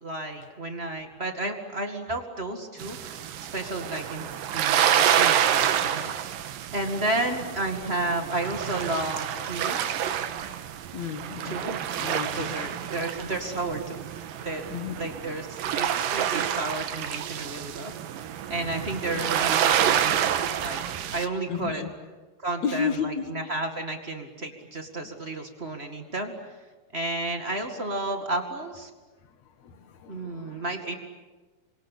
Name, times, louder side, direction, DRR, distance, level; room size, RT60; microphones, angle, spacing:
voice 1, 0.0-6.4 6.7-9.9 11.4-11.8 12.4-17.9 18.5-20.3 20.6-21.8 22.4-26.3 26.9-28.9 30.1-31.0, right 2 dB, 25° right, 4 dB, 1.5 m, -32 dB
sound 1, 2.8-21.3, right 10 dB, 70° right, 2.8 m, -28 dB
voice 2, 10.9-11.6 12.0-12.5 14.7-14.9 21.5-21.9 22.6-23.3 29.6-30.7, left 7 dB, 55° left, 9 dB, 2.5 m, -32 dB
28.5 x 24.0 x 8.5 m, 1.3 s
omnidirectional pair, 4.3 m